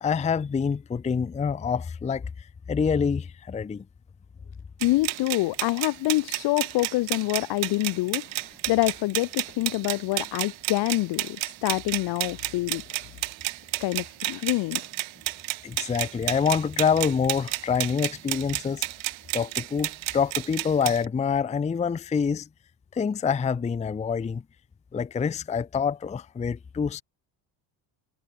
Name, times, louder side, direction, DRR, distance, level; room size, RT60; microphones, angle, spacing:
voice 1, 0.0-3.8 15.6-18.9 19.3-22.5 22.9-24.4 24.9-27.0, left 6 dB, 15° left, 0.5 m, -26 dB
voice 2, 4.8-8.4 8.7-13.0 13.8-14.8, left 19 dB, 65° left, 0.6 m, -26 dB
sound 1, 4.8-21.0, right 18 dB, 85° right, 3.0 m, -32 dB
cardioid pair, 100°, 45 cm